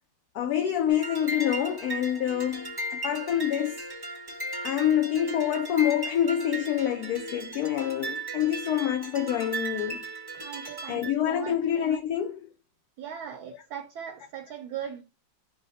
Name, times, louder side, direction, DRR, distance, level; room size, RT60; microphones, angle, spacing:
voice 1, 0.3-3.8 4.6-10.0 10.9-12.5, left 10 dB, 70° left, 0.9 m, -27 dB
sound 1, 0.9-11.1, right 1 dB, 25° right, 0.5 m, -36 dB
voice 2, 10.3-11.5 13.0-15.0, right 9 dB, 70° right, 1.0 m, -39 dB
4.8 x 2.1 x 4.0 m
omnidirectional pair, 1.9 m